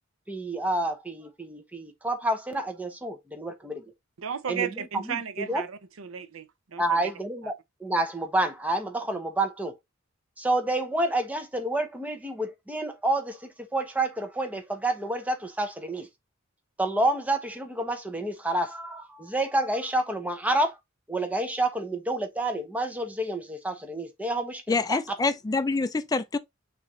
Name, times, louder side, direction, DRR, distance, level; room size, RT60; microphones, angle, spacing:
voice 1, 0.3-3.8 4.5-4.7 4.9-5.6 6.8-7.5 7.8-9.7 10.4-16.1 16.8-20.8 21.1-25.0, right 1 dB, 5° right, 0.8 m, -29 dB
voice 2, 4.2-6.5 6.7-7.0, right 7 dB, 75° right, 0.6 m, -34 dB
voice 3, 24.7-26.4, left 3 dB, 20° left, 0.4 m, -26 dB
6.2 x 2.6 x 3.1 m
head